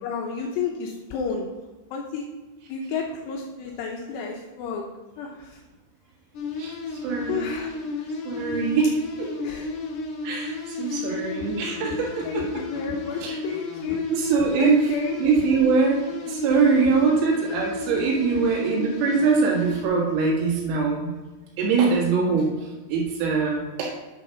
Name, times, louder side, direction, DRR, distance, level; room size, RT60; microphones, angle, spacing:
voice 1, 0.0-1.5 1.9-2.2 2.7-4.9 5.2-5.6 7.3-8.1 9.4-9.7 10.8-11.2 12.2-14.1 14.6-15.2, left 6 dB, 90° left, 0 dB, 2.4 m, -31 dB
sound 1, 6.3-19.9, left 3 dB, 65° left, 2.9 m, -33 dB
voice 2, 6.6-7.5 8.3-9.3 10.2-12.4 13.2-13.4 14.1-14.8 15.2-21.2 21.6-22.5 22.9-23.9, right 5 dB, 80° right, -2 dB, 4.4 m, -23 dB
11.0 x 4.1 x 5.7 m, 1.2 s
omnidirectional pair, 5.9 m